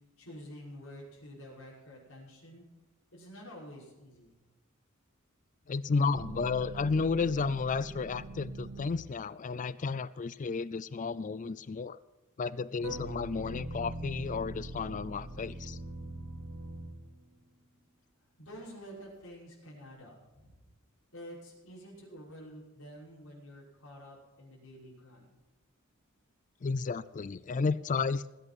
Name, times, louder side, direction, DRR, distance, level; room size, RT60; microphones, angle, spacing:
voice 1, 0.2-2.6 3.1-4.4 18.4-20.6 21.1-25.3, equal, 75° left, -4 dB, 5.7 m, -49 dB
voice 2, 5.7-12.0 12.4-15.8 26.6-28.3, left 4 dB, 35° left, 18 dB, 0.4 m, -32 dB
sound 1, 6.1-9.3 12.8-17.4, right 1 dB, 70° right, 2.6 m, -42 dB
20.0 x 8.1 x 6.2 m, 1.1 s
head